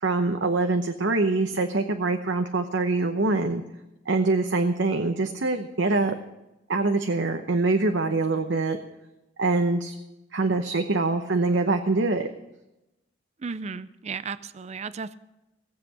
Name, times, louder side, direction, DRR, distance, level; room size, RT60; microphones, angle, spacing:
voice 1, 0.0-3.6 4.1-6.1 6.7-8.8 9.4-9.9 10.3-12.3, right 3 dB, 70° right, 5 dB, 0.9 m, -24 dB
voice 2, 13.4-15.2, right 5 dB, 35° right, 15 dB, 0.5 m, -34 dB
18.0 x 7.7 x 8.3 m, 0.95 s
head